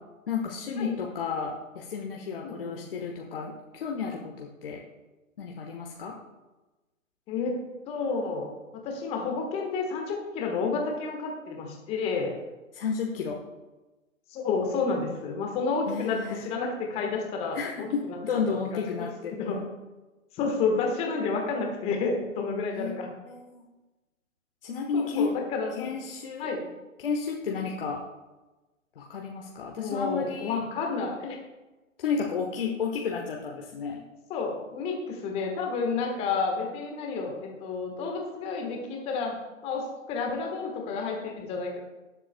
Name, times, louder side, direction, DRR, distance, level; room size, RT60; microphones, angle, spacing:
voice 1, 0.3-4.8 5.4-6.2 12.7-13.4 15.9-16.4 17.5-19.6 22.7-23.6 24.6-25.3 25.7-26.5 27.0-28.0 29.0-30.6 32.0-34.0, left 5 dB, 45° left, 0 dB, 1.2 m, -32 dB
voice 2, 2.4-2.8 7.3-7.6 7.9-12.3 14.3-18.2 19.0-19.6 20.3-23.1 24.9-25.9 26.4-26.6 29.8-31.4 34.3-41.8, left 4 dB, 15° left, 1 dB, 1.3 m, -30 dB
19.5 x 7.5 x 2.2 m, 1.1 s
figure-of-eight pair, 130°, 40 cm